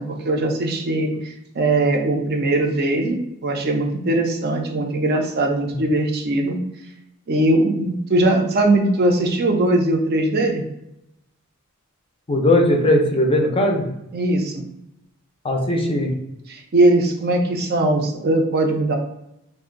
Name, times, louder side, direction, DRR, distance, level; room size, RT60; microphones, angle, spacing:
voice 1, 0.0-3.2 3.4-6.6 7.3-10.6 14.1-14.6 16.5-19.0, right 2 dB, 45° right, 3 dB, 0.4 m, -20 dB
voice 2, 12.3-13.9 15.4-16.1, left 1 dB, 25° left, 1 dB, 0.4 m, -19 dB
2.5 x 2.1 x 3.7 m, 0.83 s
head